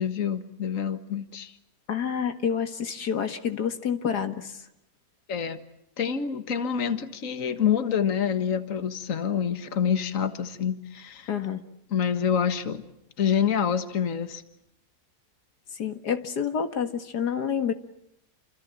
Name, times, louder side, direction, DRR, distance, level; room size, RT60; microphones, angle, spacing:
voice 1, 0.0-1.5 5.3-5.6 6.0-11.3 11.9-12.8 13.2-14.4, left 8 dB, 55° left, 10 dB, 1.9 m, -27 dB
voice 2, 1.9-4.6 11.3-11.6 15.7-17.7, left 7 dB, 85° left, 8 dB, 2.3 m, -28 dB
29.5 x 26.0 x 7.5 m, 0.78 s
omnidirectional pair, 1.7 m